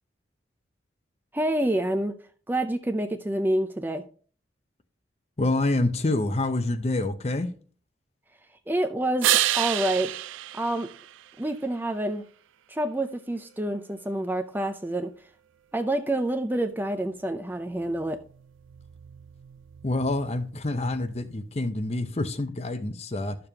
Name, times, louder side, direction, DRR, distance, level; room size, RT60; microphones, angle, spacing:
voice 1, 1.3-2.1 2.5-4.0 8.7-10.1 10.5-10.9 11.4-12.2 12.7-15.1 15.7-18.2, right 1 dB, 10° right, 0.4 m, -27 dB
voice 2, 5.4-7.5 19.8-23.4, left 2 dB, 30° left, 0.6 m, -27 dB
sound 1, 9.2-11.8 17.5-21.5, right 13 dB, 75° right, 0.4 m, -31 dB
12.5 x 6.8 x 2.8 m
head